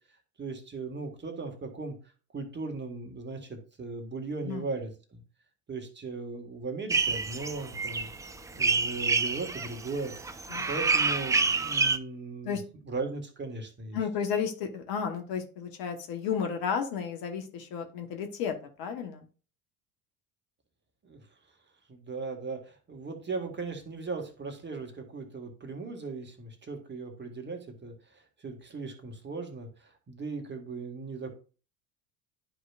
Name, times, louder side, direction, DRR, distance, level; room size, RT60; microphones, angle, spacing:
voice 1, 0.4-1.9 2.3-5.2 5.7-8.1 8.5-12.6 12.8-14.0 21.0-21.2 21.9-31.3, right 3 dB, 25° right, 4 dB, 1.7 m, -38 dB
sound 1, 6.9-12.0, right 4 dB, 10° right, 0.4 m, -28 dB
voice 2, 13.9-19.2, left 7 dB, 50° left, 5 dB, 1.3 m, -33 dB
11.5 x 4.9 x 2.4 m, 0.37 s
figure-of-eight pair, 70°, 45 cm